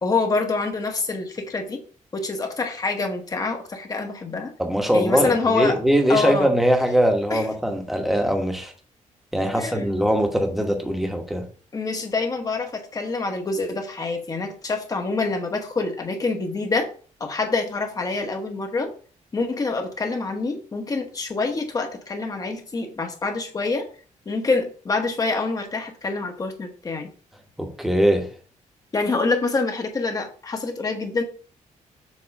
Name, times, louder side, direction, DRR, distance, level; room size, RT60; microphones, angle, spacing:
voice 1, 0.0-1.8 2.1-4.5 4.9-5.8 6.1-6.5 7.3-7.5 9.5-9.9 11.7-16.9 17.2-18.9 19.3-23.9 24.3-27.1 28.9-31.2, left 3 dB, 30° left, 1.1 m, -26 dB
voice 2, 4.6-8.7 9.3-11.4 27.6-28.3, equal, ahead, 1.1 m, -21 dB
7.2 x 2.9 x 5.2 m
cardioid pair, 145°, 13 cm